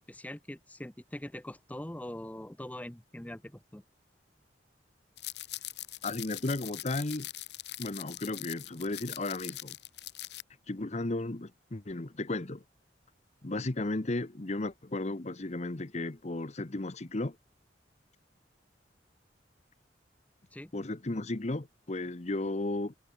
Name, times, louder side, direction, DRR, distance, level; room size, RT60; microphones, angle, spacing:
voice 1, 0.0-3.8 20.5-20.7, left 1 dB, 10° left, 0.7 m, -43 dB
sound 1, 5.2-10.4, left 14 dB, 70° left, 3.8 m, -42 dB
voice 2, 6.0-7.3 7.8-9.8 10.7-12.6 13.4-17.4 20.7-22.9, left 2 dB, 40° left, 1.0 m, -34 dB
head